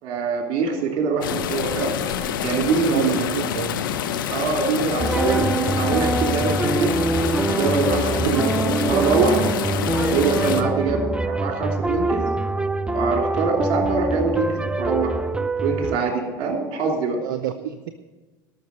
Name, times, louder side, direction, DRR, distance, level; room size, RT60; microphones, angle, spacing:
voice 1, 0.0-1.9 2.4-3.3 4.3-6.9 7.4-9.4 9.9-12.2 12.9-15.1 15.6-17.2, right 4 dB, 60° right, 2 dB, 3.1 m, -24 dB
sound 1, 1.2-10.6, left 9 dB, 80° left, 0.8 m, -27 dB
voice 2, 2.9-3.9 8.2-8.4 10.5-10.7 17.2-17.9, right 10 dB, 80° right, 9 dB, 0.5 m, -29 dB
sound 2, 5.0-16.0, right 2 dB, 10° right, 0.5 m, -24 dB
13.0 x 6.3 x 8.6 m, 1.2 s
hypercardioid pair, 80°, 11 cm